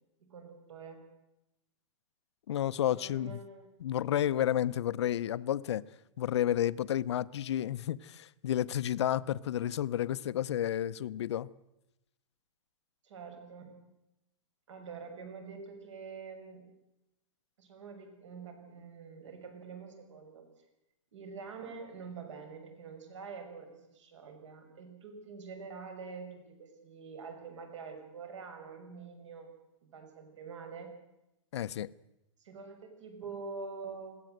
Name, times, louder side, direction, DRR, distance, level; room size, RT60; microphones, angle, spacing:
voice 1, 0.2-1.0 2.9-3.7 13.0-13.8 14.7-16.6 17.6-20.4 21.1-29.5 29.8-30.9 32.4-34.2, right 5 dB, 60° right, 6.4 m, -46 dB
voice 2, 2.5-3.4 3.8-5.8 6.2-11.5 31.5-31.9, left 11 dB, 55° left, 0.7 m, -31 dB
21.0 x 17.0 x 7.9 m
hypercardioid pair, 170°, 17 cm